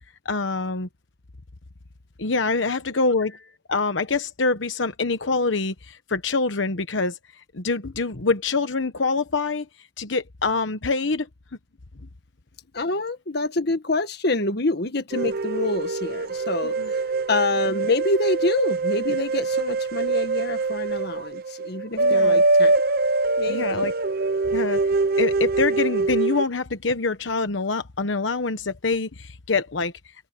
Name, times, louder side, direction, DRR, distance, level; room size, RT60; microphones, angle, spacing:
voice 1, 0.2-0.9 2.2-7.2 7.5-9.7 10.0-11.3 16.8-16.9 22.0-22.4 23.5-23.9 24.5-24.8 25.2-29.9, left 3 dB, 90° left, 1.1 m, -25 dB
voice 2, 12.7-17.0 17.3-22.8 23.4-23.9, left 2 dB, 60° left, 1.7 m, -26 dB
sound 1, 15.1-26.4, right 3 dB, 55° right, 0.7 m, -23 dB
head